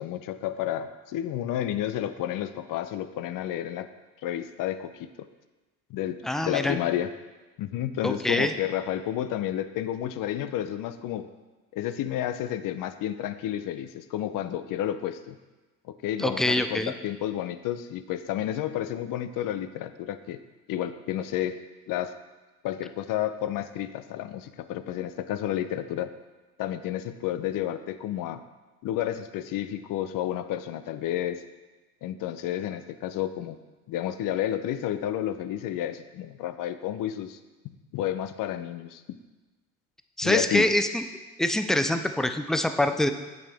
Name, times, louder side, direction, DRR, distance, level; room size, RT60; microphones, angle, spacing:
voice 1, 0.0-3.9 4.2-5.3 5.9-7.1 7.6-11.3 11.7-15.4 15.9-20.4 20.7-21.6 21.9-22.1 22.6-26.1 26.6-28.4 28.8-31.4 32.0-33.6 33.9-37.4 37.9-39.0 40.2-40.7, left 11 dB, 50° left, 12 dB, 0.6 m, -31 dB
voice 2, 6.2-6.8 8.0-8.5 16.2-16.9 40.2-41.0 41.4-43.1, left 1 dB, ahead, 8 dB, 0.3 m, -25 dB
8.5 x 6.4 x 3.4 m, 1.2 s
hypercardioid pair, 65°, 42 cm